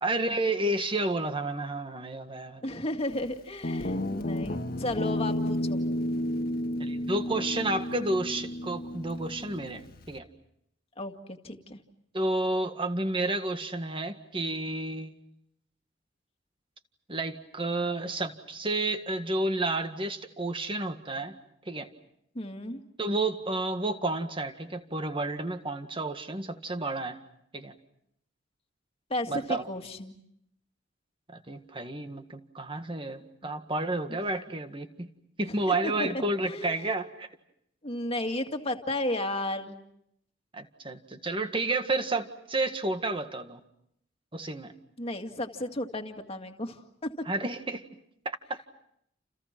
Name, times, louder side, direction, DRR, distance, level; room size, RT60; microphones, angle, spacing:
voice 1, 0.0-2.6 6.8-10.3 12.1-15.2 17.1-21.4 21.7-21.9 23.0-27.2 27.5-27.7 29.3-29.7 31.3-35.1 35.4-37.3 40.5-43.6 44.3-44.7 47.3-47.8 48.3-48.6, right 2 dB, 30° right, 8 dB, 1.9 m, -31 dB
voice 2, 2.6-5.8 11.0-11.8 22.3-22.8 29.1-30.1 33.4-33.5 35.7-36.1 36.4-36.8 37.8-39.8 45.0-47.3, left 1 dB, 30° left, 4 dB, 2.2 m, -34 dB
Guitar, 3.6-10.2, left 1 dB, 55° left, 1.5 m, -32 dB
30.0 x 29.0 x 6.0 m, 0.74 s
head